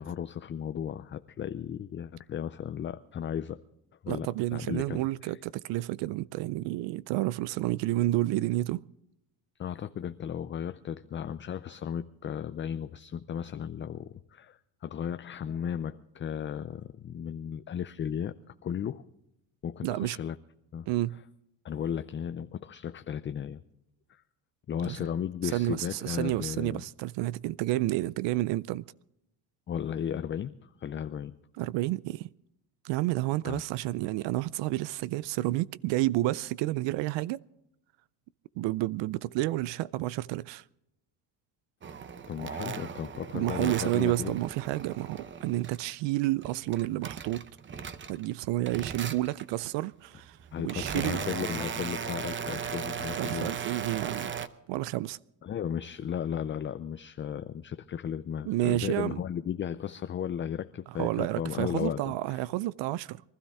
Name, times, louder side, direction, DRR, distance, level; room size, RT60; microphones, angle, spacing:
voice 1, 0.0-3.6 4.0-5.4 9.6-18.3 18.6-19.1 19.6-20.4 20.7-20.9 21.6-23.6 24.1-24.2 24.7-26.8 29.7-31.4 33.5-33.6 42.3-44.3 50.5-53.5 55.4-62.5, left 8 dB, 25° left, 0.4 m, -35 dB
voice 2, 4.1-8.8 19.8-20.2 20.9-21.2 24.8-25.0 25.5-28.8 31.6-32.3 32.8-37.4 38.6-40.6 43.3-47.4 48.1-50.4 50.6-51.2 53.2-54.3 54.7-55.2 58.4-59.2 61.0-63.2, right 17 dB, 70° right, 0.5 m, -30 dB
sound 1, 41.8-45.9 46.3-48.3 48.7-49.5 50.2-54.5, right 7 dB, 25° right, 0.8 m, -37 dB
23.5 x 13.0 x 3.5 m
cardioid pair, 115°, 45 cm